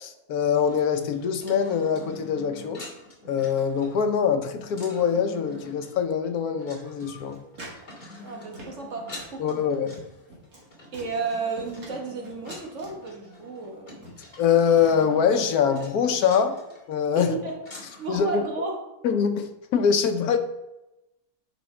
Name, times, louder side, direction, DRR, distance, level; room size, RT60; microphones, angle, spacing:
voice 1, 0.0-2.9 3.3-7.4 9.4-10.0 14.4-16.6 16.9-17.3 18.1-18.4 19.0-20.4, left 7 dB, 90° left, 7 dB, 1.3 m, -23 dB
sound 1, 0.7-18.2, left 2 dB, 35° left, 1.8 m, -46 dB
sound 2, 7.0-7.9 8.1-8.9 9.2-9.4 9.9-10.0 10.3-10.7 10.9-11.9 12.2-13.0 13.6-13.7 14.0-14.4 14.8-15.1, right 1 dB, 75° right, 2.2 m, -45 dB
voice 2, 8.2-9.7 10.9-14.1 17.1-17.6 18.0-18.8, right 4 dB, 55° right, 1 dB, 1.6 m, -33 dB
9.4 x 5.5 x 3.2 m, 0.94 s
omnidirectional pair, 1.5 m